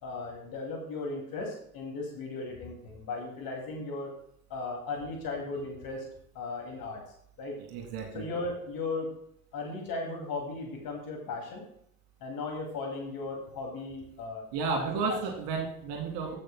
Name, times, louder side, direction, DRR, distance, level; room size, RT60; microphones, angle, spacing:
voice 1, 0.0-4.1 4.5-6.0 6.3-7.0 7.4-7.5 8.1-9.1 9.5-11.6 12.2-14.5 14.8-15.2, left 3 dB, 50° left, 0 dB, 2.5 m, -36 dB
voice 2, 7.7-8.2 14.5-16.4, right 4 dB, 60° right, 1 dB, 2.3 m, -32 dB
16.0 x 6.6 x 2.2 m, 0.70 s
hypercardioid pair, 65°, 45 cm